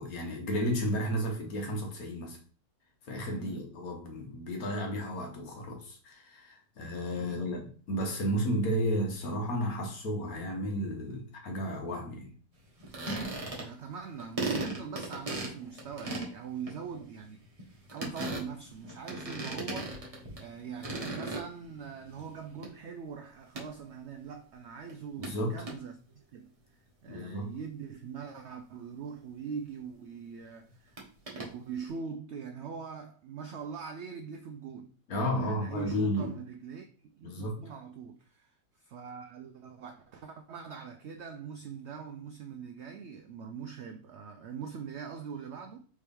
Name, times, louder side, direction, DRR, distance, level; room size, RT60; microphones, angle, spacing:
voice 1, 0.0-2.4 3.1-12.3 25.2-25.6 27.1-27.5 35.1-36.3 37.2-37.6, equal, 65° left, 1.5 m, -33 dB
voice 2, 3.3-3.6 7.1-7.5 13.5-19.9 20.4-26.5 27.0-31.0 31.3-34.9 35.4-36.9 37.1-45.8, right 6 dB, 75° right, 0.6 m, -42 dB
sound 1, 12.8-13.9 14.2-20.5 20.8-21.9 22.2-22.7 23.6-23.7 24.9-25.0 25.2-25.3 25.7-25.8 31.0-31.5, right 2 dB, 25° right, 0.9 m, -37 dB
4.4 x 3.5 x 3.4 m
omnidirectional pair, 1.7 m